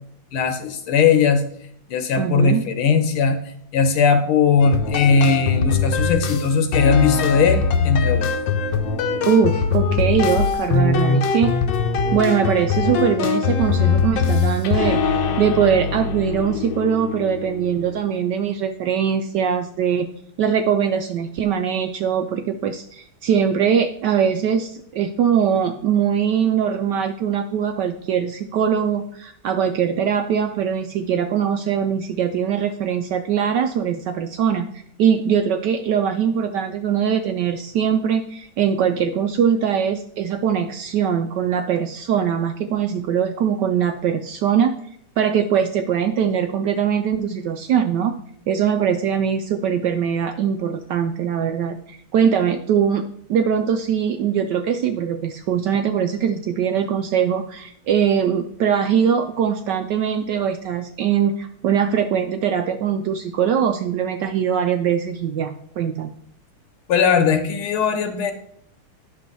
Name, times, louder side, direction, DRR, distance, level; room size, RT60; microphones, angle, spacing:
voice 1, 0.3-1.4 1.9-3.4 3.7-8.3 66.9-68.3, left 5 dB, 85° left, 8 dB, 1.9 m, -18 dB
voice 2, 2.2-2.6 9.2-11.6 12.1-20.1 20.4-34.7 35.0-48.2 48.5-66.1, right 8 dB, 75° right, 7 dB, 1.0 m, -21 dB
sound 1, 4.6-18.0, left 5 dB, 70° left, 1.4 m, -22 dB
9.8 x 6.3 x 4.0 m, 0.67 s
omnidirectional pair, 2.3 m